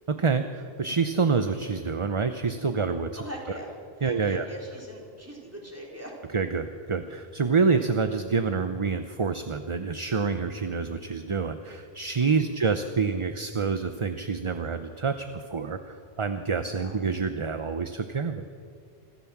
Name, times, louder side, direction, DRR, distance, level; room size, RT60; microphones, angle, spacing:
voice 1, 0.1-3.2 4.0-4.4 6.3-18.4, right 5 dB, 35° right, 8 dB, 0.7 m, -27 dB
voice 2, 3.2-3.7 4.0-6.1 12.3-12.6 16.7-16.9, equal, 15° right, -2 dB, 4.2 m, -41 dB
26.0 x 14.5 x 7.3 m, 2.3 s
omnidirectional pair, 1.1 m